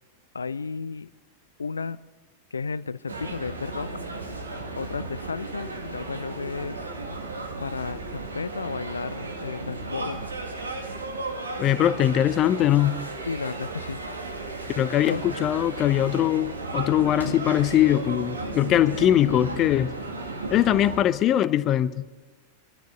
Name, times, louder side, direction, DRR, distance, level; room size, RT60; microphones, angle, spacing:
voice 1, 0.3-1.1 1.6-2.0 2.5-3.9 4.8-6.8 7.6-10.3 12.0-12.1 13.3-14.0 15.0-15.2, left 5 dB, 75° left, 18 dB, 0.5 m, -33 dB
sound 1, 3.1-21.0, right 3 dB, 75° right, 1.9 m, -34 dB
voice 2, 11.6-13.0 14.8-19.9 20.5-22.1, left 12 dB, 35° left, 15 dB, 0.7 m, -21 dB
24.0 x 13.0 x 3.9 m, 1.2 s
figure-of-eight pair, 90°, 0 cm